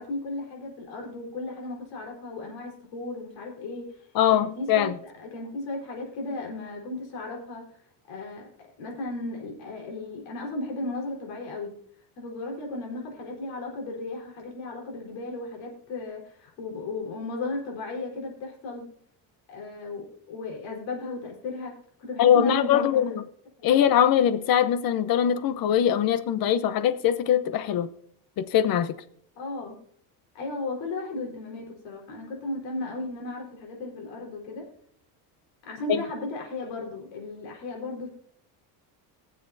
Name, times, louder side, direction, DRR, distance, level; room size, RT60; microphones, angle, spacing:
voice 1, 0.0-3.9 4.3-4.9 5.2-7.6 8.1-8.5 8.8-11.7 12.2-18.8 19.5-21.7 22.0-23.1 23.6-23.7 29.4-29.8 30.3-34.6 35.6-38.1, left 2 dB, 65° left, 4.3 m, -35 dB
voice 2, 4.1-5.0 22.2-23.2 23.6-27.9 28.4-28.9 35.9-36.0, left 9 dB, 45° left, 0.8 m, -22 dB
20.5 x 7.6 x 2.7 m
cardioid pair, 125°, 47 cm